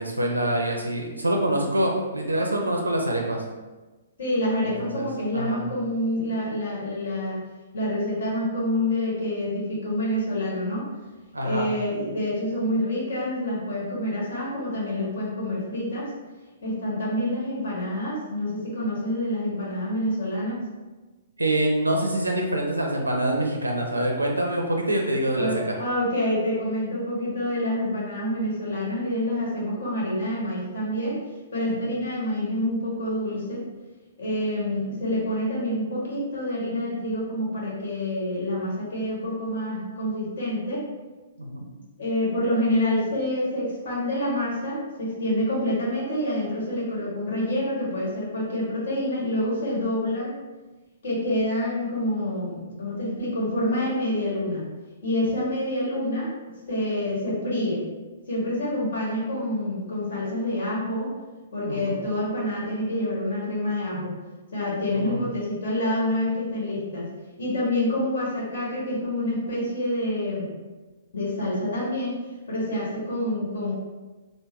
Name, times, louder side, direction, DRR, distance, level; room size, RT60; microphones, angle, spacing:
voice 1, 0.0-3.4 4.8-5.1 5.3-5.6 11.3-11.7 21.4-25.8 31.7-31.8 41.4-41.7 61.7-62.0 64.9-65.2, right 1 dB, 85° right, 1 dB, 0.4 m, -25 dB
voice 2, 4.2-7.4 7.7-10.9 11.4-16.1 16.6-20.6 25.3-31.2 31.5-33.6 34.2-40.8 42.0-50.3 51.0-54.6 55.0-56.3 56.7-57.9 58.3-61.1 61.5-64.2 64.5-67.1 67.4-70.5 71.1-72.2 72.5-73.7, left 1 dB, 60° left, -6 dB, 1.4 m, -27 dB
3.6 x 2.1 x 2.9 m, 1.2 s
figure-of-eight pair, 115°, 0 cm